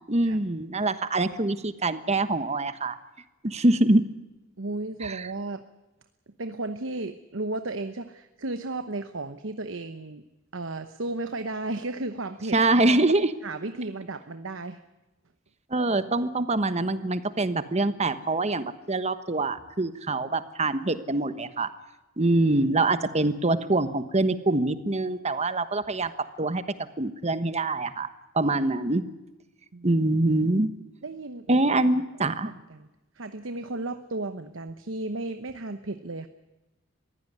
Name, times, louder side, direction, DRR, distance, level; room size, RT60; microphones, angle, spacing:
voice 1, 0.1-3.0 3.4-4.0 5.0-5.3 12.5-13.3 15.7-21.7 22.2-26.1 26.4-26.6 27.0-28.1 28.3-29.0 29.8-30.7 31.5-32.5, right 2 dB, 35° right, 12 dB, 1.2 m, -24 dB
voice 2, 4.6-5.6 6.4-10.2 10.5-13.0 13.4-14.8 29.7-29.9 31.0-31.6 32.2-32.9 33.1-36.3, right 2 dB, 75° right, 9 dB, 1.0 m, -34 dB
22.5 x 15.5 x 9.5 m, 1.0 s
head